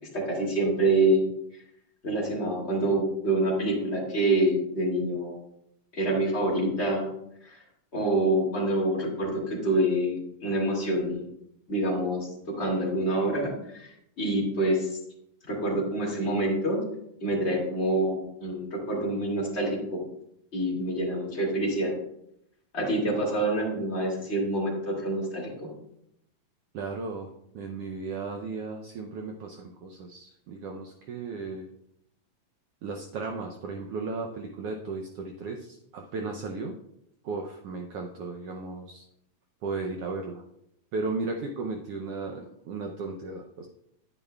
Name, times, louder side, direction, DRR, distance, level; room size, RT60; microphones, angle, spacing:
voice 1, 0.1-1.2 2.0-5.4 5.9-7.1 7.4-7.6 7.9-11.3 11.7-12.3 12.6-15.0 15.5-16.8 17.2-20.0 20.5-21.9 22.7-25.7, right 1 dB, 25° left, -4 dB, 2.3 m, -26 dB
voice 2, 26.7-31.7 32.8-36.7 37.2-39.1 39.6-40.4 40.9-43.7, right 3 dB, 75° right, 2 dB, 1.4 m, -35 dB
10.0 x 9.6 x 2.3 m, 0.77 s
omnidirectional pair, 3.3 m